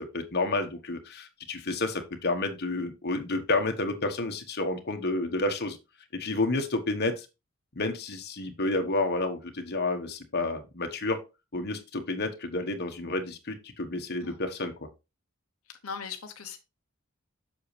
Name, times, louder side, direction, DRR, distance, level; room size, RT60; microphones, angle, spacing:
voice 1, 0.0-5.8 6.1-7.3 7.7-11.2 11.5-14.9, left 2 dB, 50° left, 1.3 m, -30 dB
voice 2, 15.7-16.6, left 6 dB, 85° left, 1.0 m, -39 dB
7.8 x 6.4 x 3.3 m
head